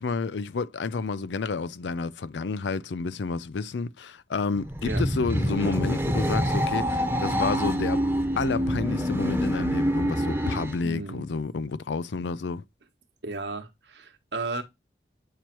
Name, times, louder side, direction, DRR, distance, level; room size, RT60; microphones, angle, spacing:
voice 1, 0.0-8.1 8.4-12.6, left 4 dB, 85° left, 0.5 m, -30 dB
sound 1, 4.6-10.8, equal, 15° right, 0.9 m, -26 dB
voice 2, 10.8-11.3 13.2-14.6, right 3 dB, 75° right, 1.1 m, -34 dB
8.5 x 3.1 x 4.4 m
head